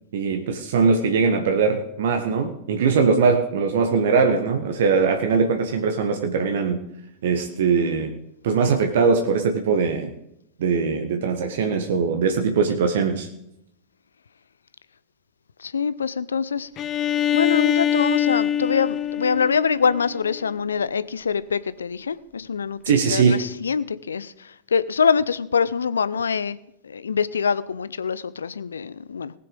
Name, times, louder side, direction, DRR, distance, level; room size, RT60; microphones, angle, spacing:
voice 1, 0.1-6.8 7.2-8.2 8.4-10.1 10.6-13.3 22.8-23.4, right 5 dB, 60° right, 1.4 m, -21 dB
voice 2, 15.6-16.7 17.3-26.6 26.8-29.3, left 6 dB, 70° left, 0.6 m, -24 dB
Bowed string instrument, 16.8-20.5, left 9 dB, 30° left, 0.6 m, -24 dB
19.5 x 6.8 x 5.2 m
figure-of-eight pair, 90°, 0 cm